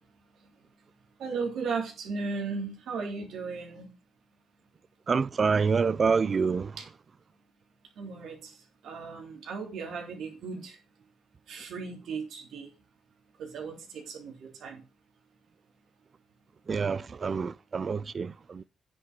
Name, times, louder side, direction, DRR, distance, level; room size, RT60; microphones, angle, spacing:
voice 1, 1.2-3.9 6.8-6.9 7.9-10.8 11.5-12.7 13.4-14.8, right 4 dB, 70° right, 3.4 m, -36 dB
voice 2, 5.1-6.8 16.7-18.6, right 5 dB, 40° right, 0.4 m, -27 dB
9.7 x 5.9 x 6.1 m
cardioid pair, 90°, 0 cm